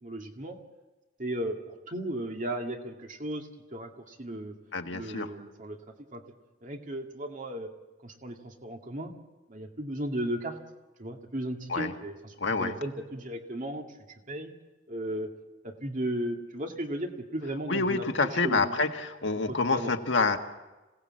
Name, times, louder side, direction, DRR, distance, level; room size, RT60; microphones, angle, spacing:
voice 1, 0.0-0.6 1.2-4.6 4.9-6.2 6.6-7.7 8.0-9.1 9.5-10.6 11.0-13.9 14.3-14.5 14.9-15.3 15.6-18.8 19.5-19.9, right 1 dB, 45° right, 3 dB, 2.2 m, -35 dB
voice 2, 4.7-5.3 11.7-11.9 12.4-12.7 17.7-20.4, left 3 dB, 75° left, 5 dB, 1.7 m, -27 dB
26.5 x 18.0 x 7.7 m, 1.1 s
head